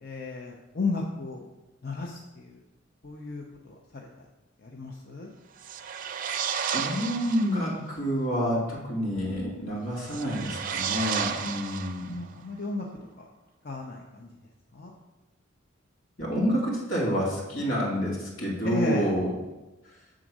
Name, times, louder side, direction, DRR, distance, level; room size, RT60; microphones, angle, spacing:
voice 1, 0.0-1.4 1.8-2.6 3.0-4.1 4.6-5.3 12.0-12.9 13.6-14.3 14.7-14.9 18.6-19.1, left 3 dB, 50° left, -1 dB, 0.7 m, -34 dB
sound 1, 5.6-7.6 10.0-12.3, right 7 dB, 45° right, 0.4 m, -32 dB
voice 2, 6.7-12.2 16.2-19.3, equal, 80° left, -4 dB, 2.6 m, -28 dB
7.5 x 3.7 x 6.2 m, 1.0 s
head